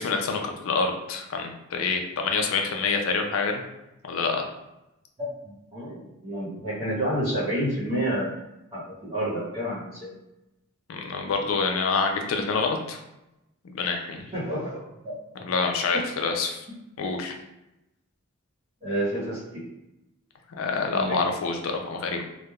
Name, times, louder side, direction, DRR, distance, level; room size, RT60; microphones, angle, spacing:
voice 1, 0.0-3.6 4.1-4.5 10.9-13.0 13.6-14.2 15.4-16.7 17.0-17.3 20.6-22.2, left 4 dB, 70° left, 3 dB, 0.4 m, -27 dB
voice 2, 5.2-8.4 8.7-10.1 14.3-15.2 15.9-16.0 18.8-19.6 20.9-21.2, equal, 25° right, -11 dB, 0.9 m, -29 dB
3.2 x 2.1 x 2.2 m, 0.92 s
head